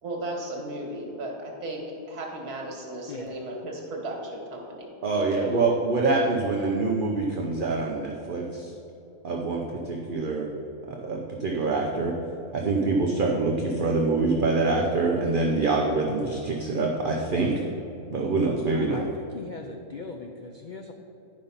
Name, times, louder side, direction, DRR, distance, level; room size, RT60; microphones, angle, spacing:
voice 1, 0.0-5.4, right 1 dB, 85° right, 0 dB, 2.0 m, -35 dB
voice 2, 3.1-3.4 5.6-5.8 18.7-20.9, left 3 dB, 85° left, 3 dB, 0.4 m, -40 dB
voice 3, 5.0-8.7 9.2-10.5 10.9-12.1 12.5-17.5 18.1-19.0, right 3 dB, 45° right, 0 dB, 0.7 m, -25 dB
10.0 x 5.4 x 5.5 m, 2.9 s
omnidirectional pair, 1.6 m